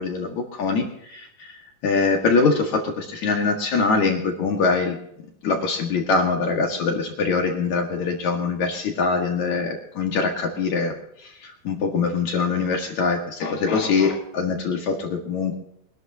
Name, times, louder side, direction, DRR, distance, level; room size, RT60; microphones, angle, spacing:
voice 1, 0.0-1.5 1.8-5.0 5.4-10.9 11.2-15.5, left 4 dB, 55° left, 2 dB, 2.9 m, -23 dB
24.0 x 12.0 x 2.8 m, 0.71 s
omnidirectional pair, 4.3 m